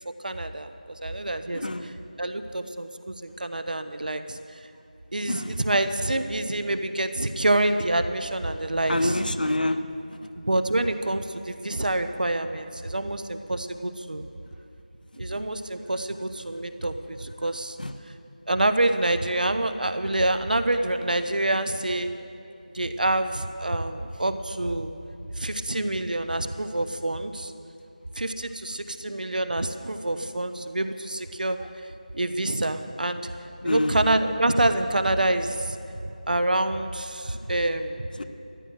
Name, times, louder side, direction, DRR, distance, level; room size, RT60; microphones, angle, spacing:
voice 1, 0.2-0.7 1.0-1.6 2.2-4.4 5.1-9.2 10.3-14.3 15.1-17.8 18.5-22.1 22.7-24.9 25.4-27.5 28.2-31.6 32.1-33.3 33.6-38.1, right 1 dB, 70° right, 9 dB, 1.0 m, -27 dB
voice 2, 1.5-1.9 5.3-5.6 8.9-9.8 15.3-15.4 17.8-17.9 33.6-34.0 38.2-38.3, left 1 dB, 80° left, 7 dB, 1.0 m, -27 dB
14.0 x 10.5 x 7.5 m, 2.7 s
figure-of-eight pair, 175°, 5 cm